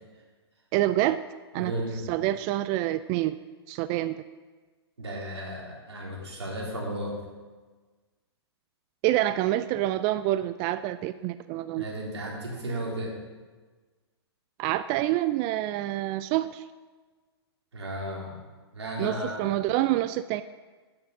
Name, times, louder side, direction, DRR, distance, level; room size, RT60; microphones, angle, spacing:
voice 1, 0.7-1.2 1.5-1.7 2.1-3.4 3.7-4.2 9.0-11.8 14.6-16.7 19.0-20.4, right 14 dB, 30° right, 14 dB, 0.3 m, -27 dB
voice 2, 1.5-2.0 5.0-7.2 11.8-13.1 17.7-18.3 18.7-19.5, right 1 dB, 85° right, -3 dB, 3.9 m, -34 dB
9.9 x 8.7 x 6.3 m, 1.4 s
hypercardioid pair, 120°, 14 cm